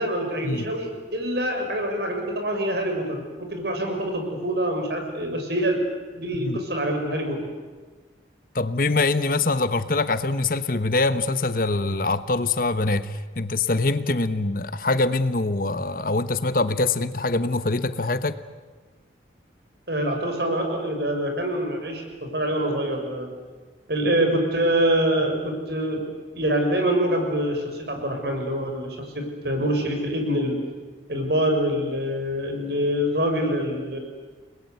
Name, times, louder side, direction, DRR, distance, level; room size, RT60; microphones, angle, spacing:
voice 1, 0.0-5.8 6.1-7.4 19.9-23.3 23.9-26.0 26.3-30.6 31.1-34.0, right 1 dB, 65° right, 3 dB, 6.6 m, -25 dB
voice 2, 8.5-18.4, left 3 dB, 50° left, 12 dB, 1.1 m, -24 dB
29.5 x 21.0 x 9.6 m, 1.4 s
head